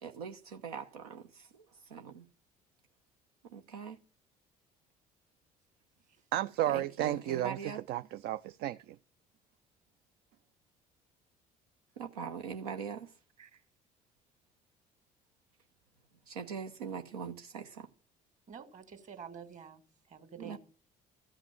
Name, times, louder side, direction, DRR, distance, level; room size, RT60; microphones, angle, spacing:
voice 1, 0.0-2.3 3.5-4.0 6.7-7.8 12.0-13.1 16.3-17.9 20.4-20.6, right 6 dB, 85° right, 0.9 m, -42 dB
voice 2, 6.3-7.6 7.9-9.0, right 13 dB, 60° right, 0.5 m, -32 dB
voice 3, 18.5-19.8 20.1-20.6, right 7 dB, 40° right, 2.5 m, -48 dB
14.0 x 5.9 x 9.0 m
hypercardioid pair, 55°, 19 cm